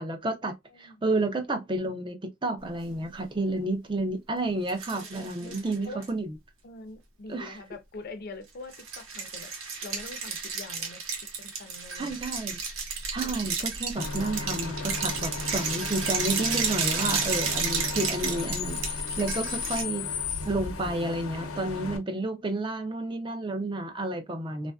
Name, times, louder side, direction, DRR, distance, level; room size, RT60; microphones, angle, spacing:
voice 1, 0.0-6.3 7.3-7.6 12.0-12.6 13.1-20.1 20.4-24.7, right 2 dB, 25° right, 0.5 m, -31 dB
sound 1, 4.7-6.1 8.7-19.8, right 5 dB, 80° right, 1.1 m, -32 dB
voice 2, 4.9-6.1 6.6-9.5 9.8-11.0 11.4-12.2 13.2-13.4 13.8-13.9, left 2 dB, 45° left, 0.5 m, -44 dB
Bus / Idling / Screech, 14.0-22.0, left 4 dB, 85° left, 0.7 m, -35 dB
3.1 x 2.5 x 2.2 m
head